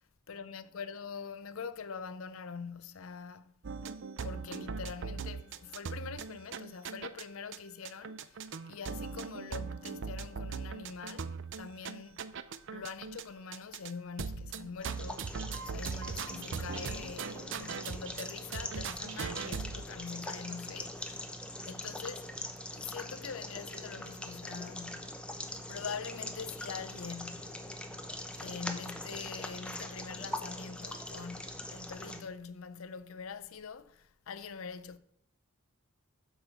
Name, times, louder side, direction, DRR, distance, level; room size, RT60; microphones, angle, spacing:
voice 1, 0.3-3.5 4.2-8.4 8.7-12.3 12.7-21.2 21.7-22.3 22.7-25.2 25.7-27.6 28.3-35.0, left 5 dB, 70° left, 0.6 m, -44 dB
sound 1, 3.6-7.2 7.5-7.6 7.9-13.2 13.5-13.9 14.2-18.3 18.5-19.9, right 5 dB, 60° right, 0.5 m, -40 dB
sound 2, 14.8-32.2, left 1 dB, 5° left, 0.7 m, -42 dB
8.0 x 5.5 x 5.8 m
head